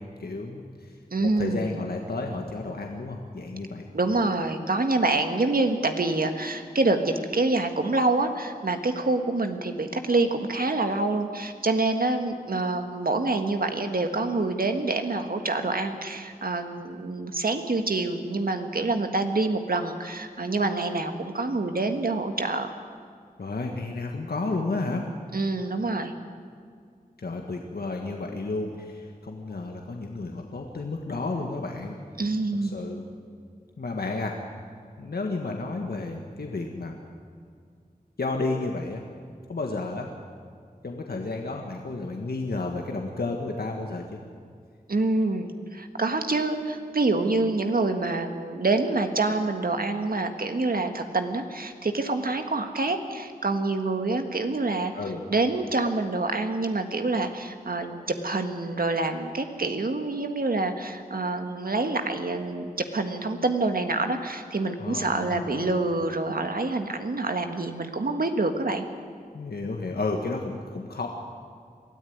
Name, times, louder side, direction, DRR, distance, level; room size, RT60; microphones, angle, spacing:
voice 1, 0.2-0.9 1.2-3.9 23.4-25.0 27.2-31.9 32.6-33.0 33.8-34.4 35.0-36.9 38.2-39.0 39.5-40.1 40.8-44.2 54.9-55.2 64.8-65.7 69.3-71.1, left 3 dB, 85° left, 2 dB, 1.6 m, -32 dB
voice 2, 1.1-1.8 3.9-22.7 25.3-26.1 32.2-32.8 44.9-54.9 55.3-68.8, right 2 dB, 70° right, 6 dB, 1.7 m, -26 dB
22.5 x 14.0 x 9.4 m, 2.2 s
wide cardioid pair, 50°, 16 cm